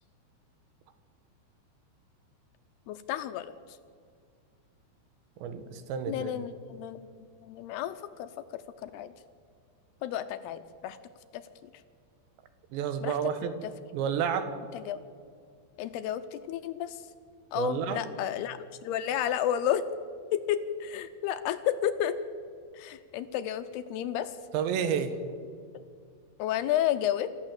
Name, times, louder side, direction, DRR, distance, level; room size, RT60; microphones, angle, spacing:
voice 1, 2.9-3.5 6.1-7.1 7.4-8.3 8.8-9.1 10.0-11.0 13.0-13.1 14.9-15.0 15.8-17.0 17.5-19.8 20.3-22.2 22.7-24.3 26.4-27.3, left 11 dB, 80° left, 10 dB, 2.5 m, -31 dB
voice 2, 5.4-6.4 12.7-13.6 13.9-14.5 17.5-18.0 24.5-25.2, right 7 dB, 75° right, 9 dB, 3.6 m, -30 dB
27.5 x 15.0 x 7.6 m, 2.2 s
omnidirectional pair, 5.2 m